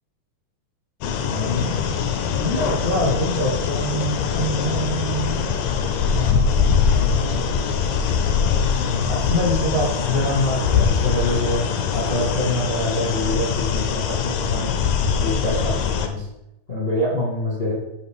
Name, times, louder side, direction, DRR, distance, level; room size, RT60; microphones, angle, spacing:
sound 1, 1.0-16.1, left 6 dB, 80° left, 2.1 m, -22 dB
voice 1, 1.2-2.0 2.3-5.5 6.0-7.3 8.5-11.6 11.9-14.7 15.2-16.2 16.7-17.8, left 1 dB, 30° left, -6 dB, 1.1 m, -25 dB
8.0 x 5.6 x 3.7 m, 0.85 s
omnidirectional pair, 4.3 m